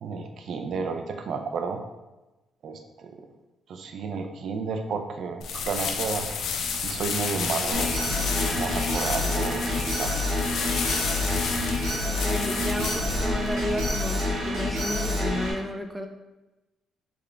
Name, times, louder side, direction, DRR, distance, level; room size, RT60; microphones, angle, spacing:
voice 1, 0.0-1.8 2.6-3.3 3.7-6.3 6.8-8.0 8.5-10.1, right 5 dB, 65° right, 5 dB, 0.4 m, -32 dB
sound 1, 5.4-13.9, left 5 dB, 70° left, 0.5 m, -31 dB
Alarm, 7.7-15.5, left 1 dB, 80° right, 1.4 m, -28 dB
voice 2, 12.0-16.1, equal, 5° right, 4 dB, 0.5 m, -33 dB
3.8 x 3.2 x 3.3 m, 1.1 s
cardioid pair, 90°, 0 cm